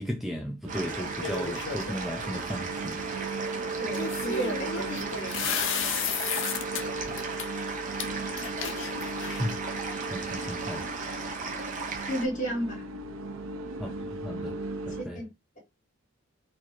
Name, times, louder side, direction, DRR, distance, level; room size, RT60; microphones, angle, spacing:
voice 1, 0.0-3.1 7.1-7.2 9.3-9.6 10.1-10.9 13.8-14.6 14.9-15.3, equal, ahead, 0.4 m, -35 dB
sound 1, 0.6-15.0, right 3 dB, 80° right, 0.5 m, -37 dB
sound 2, 0.7-12.3, right 4 dB, 40° right, 0.9 m, -36 dB
sound 3, 1.2-2.0 3.9-6.8 7.2-7.5 8.0-8.1 8.4-9.6, left 6 dB, 65° left, 0.6 m, -32 dB
voice 2, 3.8-5.6 12.1-12.9 15.0-15.3, right 1 dB, 40° left, 2.0 m, -33 dB
4.3 x 2.7 x 2.9 m
head